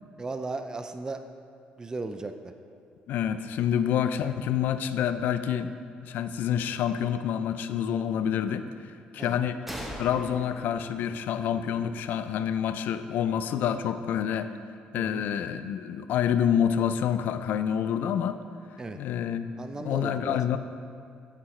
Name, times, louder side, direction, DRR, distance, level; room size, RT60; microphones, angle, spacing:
voice 1, 0.2-1.2 1.8-2.5 9.2-9.4 14.9-15.3 18.8-19.0 19.6-20.4, right 3 dB, 20° right, 8 dB, 0.4 m, -36 dB
voice 2, 3.1-5.7 6.0-8.6 9.1-9.6 10.0-14.5 14.9-18.4 18.9-19.5 19.7-20.6, left 9 dB, 70° left, 11 dB, 0.4 m, -27 dB
sound 1, 9.7-13.2, equal, 5° right, 0.9 m, -43 dB
8.4 x 7.3 x 3.2 m, 2.4 s
cardioid pair, 90°, 3 cm